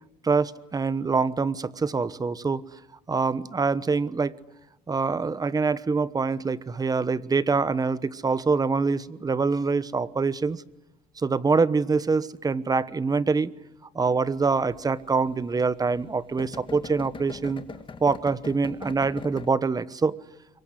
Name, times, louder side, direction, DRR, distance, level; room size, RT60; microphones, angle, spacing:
voice 1, 0.2-2.6 3.1-4.3 4.9-10.6 11.2-13.5 13.9-17.6 18.0-20.1, right 4 dB, 20° right, 16 dB, 1.1 m, -25 dB
sound 1, 14.3-19.5, left 5 dB, 30° left, 1.9 m, -41 dB
26.0 x 23.5 x 9.7 m, 0.90 s
cardioid pair, 110°, 17 cm